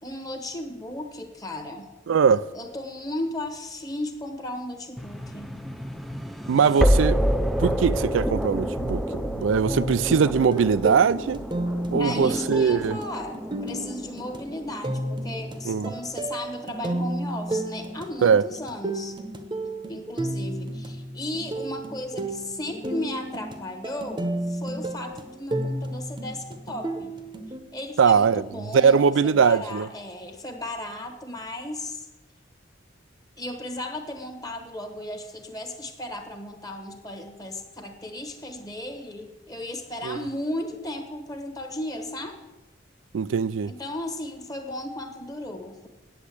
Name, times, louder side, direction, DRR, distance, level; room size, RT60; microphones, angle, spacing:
voice 1, 0.0-1.9 2.3-5.6 9.7-9.9 12.0-19.2 19.9-27.1 27.7-32.1 33.4-42.4 43.6-45.9, left 1 dB, 20° left, 1.1 m, -35 dB
voice 2, 2.1-2.5 6.5-7.2 7.6-11.4 11.9-13.0 15.7-15.9 18.2-18.5 28.0-28.4 28.7-29.9 40.1-40.2 43.1-43.7, right 6 dB, 80° right, 0.4 m, -21 dB
sound 1, 5.0-16.0, equal, ahead, 0.4 m, -28 dB
sound 2, 9.6-27.6, right 1 dB, 25° right, 0.8 m, -32 dB
8.5 x 8.1 x 8.3 m
head